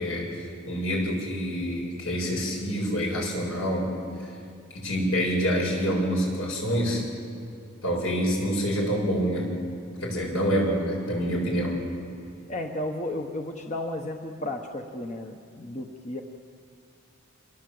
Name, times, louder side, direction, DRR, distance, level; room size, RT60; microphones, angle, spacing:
voice 1, 0.0-3.9 4.7-7.1 7.8-9.5 10.0-11.8, equal, 80° left, -1 dB, 7.3 m, -27 dB
voice 2, 12.5-16.2, left 1 dB, 35° left, 3 dB, 1.2 m, -33 dB
27.5 x 22.0 x 7.9 m, 2.5 s
head